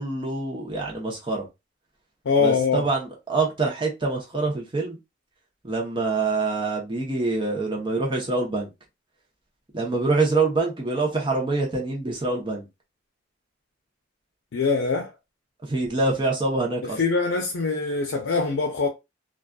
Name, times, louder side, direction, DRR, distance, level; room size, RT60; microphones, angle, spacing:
voice 1, 0.0-1.5 2.4-5.0 5.6-8.7 9.7-12.7 15.6-17.0, right 3 dB, 25° right, 0.7 m, -25 dB
voice 2, 2.2-2.8 14.5-15.1 16.8-18.9, left 4 dB, 85° left, 0.5 m, -23 dB
2.4 x 2.3 x 2.2 m
head